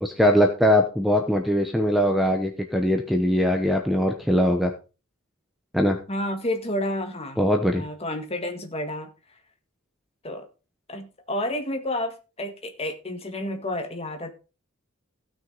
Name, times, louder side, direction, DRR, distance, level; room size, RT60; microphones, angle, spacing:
voice 1, 0.0-4.7 5.7-6.0 7.4-7.8, equal, ahead, 4 dB, 0.8 m, -21 dB
voice 2, 6.1-9.4 10.2-10.5 10.9-14.3, left 1 dB, 30° left, 6 dB, 1.7 m, -30 dB
16.0 x 6.2 x 3.9 m, 0.32 s
head